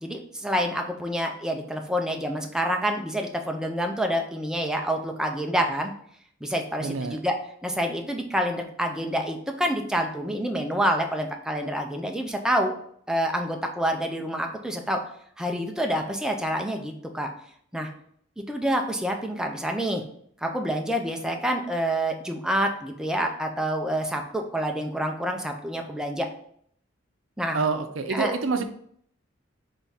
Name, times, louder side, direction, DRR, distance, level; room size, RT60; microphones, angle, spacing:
voice 1, 0.0-5.9 6.4-7.3 7.6-12.7 13.1-15.0 15.4-17.3 17.7-17.9 18.5-20.0 20.4-26.3 27.4-27.6 28.1-28.3, equal, 5° right, 3 dB, 0.5 m, -27 dB
voice 2, 6.8-7.2 27.5-28.6, right 4 dB, 80° right, 8 dB, 0.5 m, -27 dB
3.7 x 3.5 x 4.1 m, 0.65 s
head